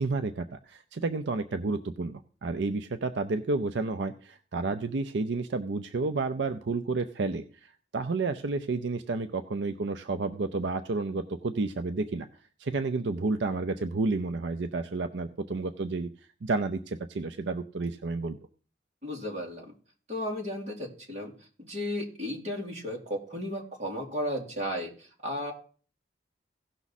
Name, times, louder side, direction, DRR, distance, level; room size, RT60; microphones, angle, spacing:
voice 1, 0.0-12.3 12.6-16.1 16.4-18.4, right 3 dB, 75° right, 9 dB, 0.5 m, -31 dB
voice 2, 19.0-19.6 20.1-21.3 21.6-25.5, left 1 dB, 40° right, -1 dB, 2.5 m, -34 dB
16.5 x 6.0 x 4.1 m, 0.41 s
head